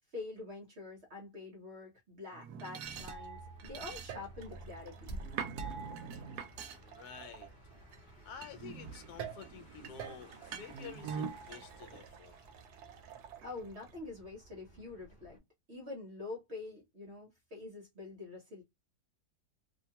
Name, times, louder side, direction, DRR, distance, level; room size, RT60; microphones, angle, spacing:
voice 1, 0.1-5.2 13.4-15.4 15.7-18.6, left 3 dB, 50° right, 0.9 m, -46 dB
sound 1, 2.3-8.0 8.4-13.9, right 7 dB, 75° right, 1.0 m, -45 dB
sound 2, 2.8-15.4, right 2 dB, 40° left, 0.9 m, -52 dB
voice 2, 6.8-7.5 8.2-12.3, left 7 dB, 70° left, 1.1 m, -50 dB
2.9 x 2.2 x 2.8 m
omnidirectional pair, 1.8 m